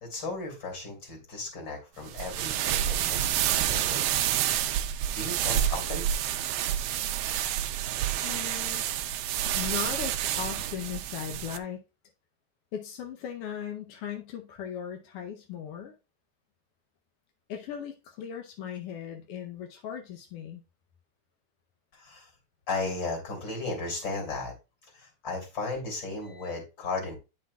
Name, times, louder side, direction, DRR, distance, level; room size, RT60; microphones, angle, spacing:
voice 1, 0.0-4.4 5.1-6.6 21.9-22.3 22.7-24.5 24.9-27.2, left 3 dB, 40° left, 3.2 m, -35 dB
sound 1, 2.1-11.6, right 11 dB, 85° right, 1.3 m, -29 dB
voice 2, 8.2-8.9 9.5-11.8 12.7-15.9 17.5-20.6, left 8 dB, 70° left, 1.4 m, -38 dB
9.7 x 6.0 x 2.3 m
omnidirectional pair, 3.3 m